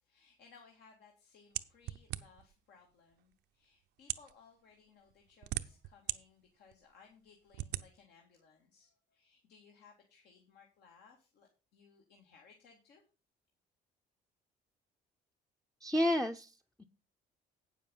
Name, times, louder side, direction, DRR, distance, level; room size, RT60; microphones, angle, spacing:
voice 1, 0.0-13.0, left 5 dB, 75° left, 1 dB, 2.3 m, -63 dB
sound 1, 1.6-2.5 3.3-3.4 4.0-4.3 5.1-6.2 6.7-6.8 7.5-7.9, right 15 dB, 80° right, 0.7 m, -38 dB
voice 2, 15.8-16.8, left 1 dB, 5° left, 5 dB, 0.6 m, -31 dB
9.0 x 7.3 x 5.5 m, 0.32 s
cardioid pair, 110°, 17 cm